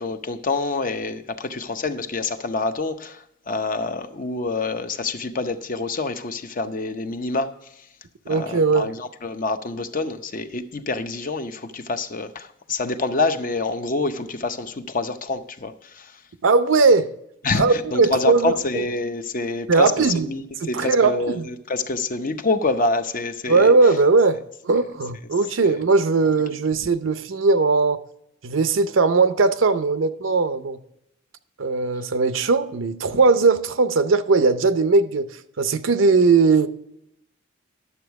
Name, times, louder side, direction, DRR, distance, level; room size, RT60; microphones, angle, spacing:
voice 1, 0.0-7.8 8.3-16.2 17.4-19.9 20.2-23.7 25.6-25.7, left 3 dB, 45° left, 0.7 m, -27 dB
voice 2, 8.3-8.9 16.4-17.1 17.5-18.8 19.7-20.3 20.6-21.5 23.5-28.0 28.4-30.8 31.6-36.7, right 4 dB, 70° right, 0.6 m, -19 dB
11.0 x 7.0 x 4.6 m
head